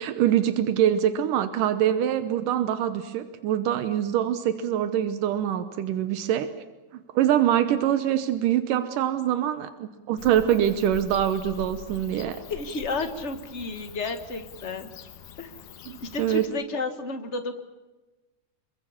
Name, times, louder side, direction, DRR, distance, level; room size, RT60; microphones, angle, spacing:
voice 1, 0.0-6.5 7.2-12.4 15.9-16.5, right 10 dB, 90° right, 10 dB, 2.6 m, -24 dB
Bird / Cricket, 10.2-16.5, left 7 dB, 80° left, 2.9 m, -44 dB
voice 2, 12.5-14.9 15.4-15.5 16.0-17.6, left 3 dB, 30° left, 7 dB, 1.4 m, -32 dB
28.0 x 22.5 x 7.2 m, 1.1 s
omnidirectional pair, 3.6 m